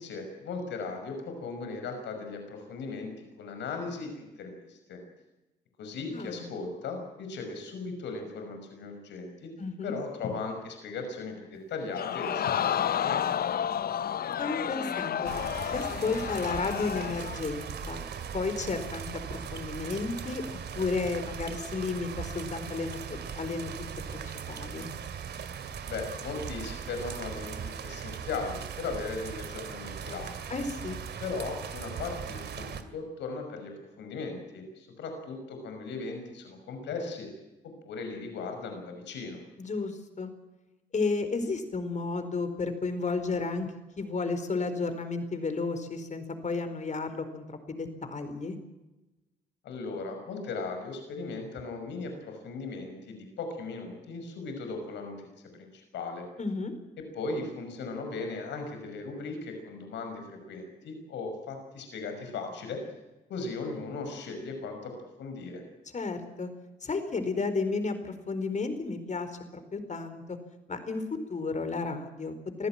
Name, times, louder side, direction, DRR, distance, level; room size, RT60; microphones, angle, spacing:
voice 1, 0.0-5.0 5.8-9.5 9.8-13.3 25.9-30.5 31.2-37.3 37.8-39.4 49.6-55.2 55.5-56.2 57.1-62.8 63.3-65.6, left 4 dB, 90° left, 5 dB, 5.7 m, -37 dB
voice 2, 6.1-6.5 9.6-9.9 14.4-15.3 15.7-18.1 18.3-20.4 20.7-23.7 24.1-24.9 30.5-31.0 39.6-40.3 40.9-43.7 44.0-48.6 56.4-56.8 65.9-66.5 66.8-70.4 70.7-72.7, left 4 dB, 45° left, 9 dB, 4.5 m, -33 dB
Crowd, 11.9-17.4 17.8-17.9, left 9 dB, 60° left, 0.7 m, -31 dB
sound 1, 15.2-32.8, right 7 dB, 70° right, 2.4 m, -39 dB
25.0 x 15.5 x 9.1 m, 1.0 s
cardioid pair, 80°, 18 cm